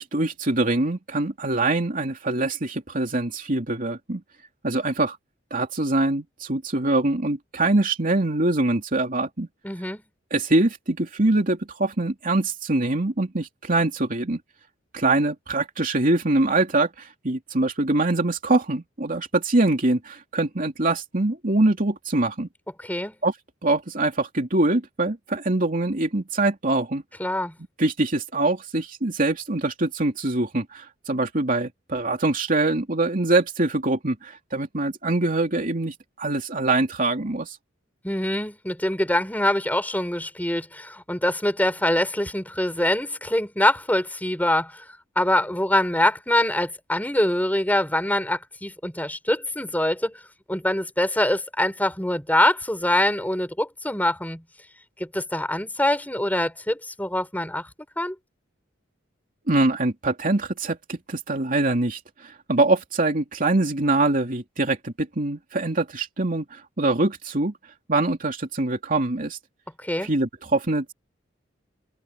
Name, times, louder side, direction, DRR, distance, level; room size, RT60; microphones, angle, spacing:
voice 1, 0.0-4.2 4.6-5.2 5.5-9.5 10.3-14.4 14.9-22.5 23.2-23.3 23.6-27.0 27.8-37.6 59.5-67.5 67.9-69.4 70.0-70.9, right 2 dB, 45° right, 2.9 m, -24 dB
voice 2, 9.6-10.0 22.8-23.1 27.2-27.5 38.0-44.8 45.1-50.2 50.5-54.4 55.0-57.7 58.0-58.1 69.8-70.1, left 1 dB, 10° left, 6.4 m, -24 dB
head